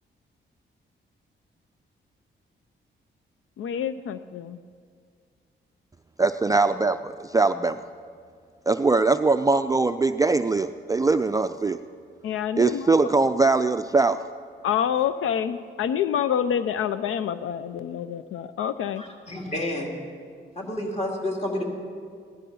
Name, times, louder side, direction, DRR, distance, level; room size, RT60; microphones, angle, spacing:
voice 1, 3.6-4.6 12.2-13.1 14.6-19.0, left 9 dB, 85° left, 13 dB, 0.5 m, -27 dB
voice 2, 6.2-7.7 8.7-11.8 12.6-14.2, right 3 dB, 15° right, 9 dB, 0.3 m, -21 dB
voice 3, 19.0-19.9 20.6-21.6, left 1 dB, 30° left, -1 dB, 2.7 m, -30 dB
16.5 x 11.5 x 5.4 m, 2.1 s
cardioid pair, 95°, 21 cm